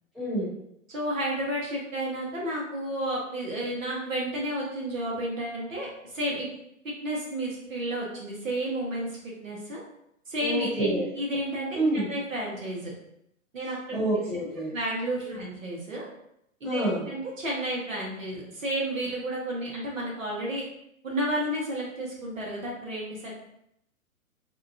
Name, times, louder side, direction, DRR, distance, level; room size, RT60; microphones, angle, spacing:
voice 1, 0.1-0.5 10.4-11.1 11.7-12.1 13.9-14.7 15.2-15.3 16.6-17.0, right 1 dB, ahead, -13 dB, 0.6 m, -27 dB
voice 2, 0.9-6.5 7.0-9.8 10.3-10.9 11.2-12.9 13.5-14.0 14.7-16.0 16.6-20.6 21.0-23.3, right 1 dB, 70° right, -4 dB, 1.2 m, -31 dB
2.8 x 2.3 x 2.4 m, 0.77 s
figure-of-eight pair, 120°, 42 cm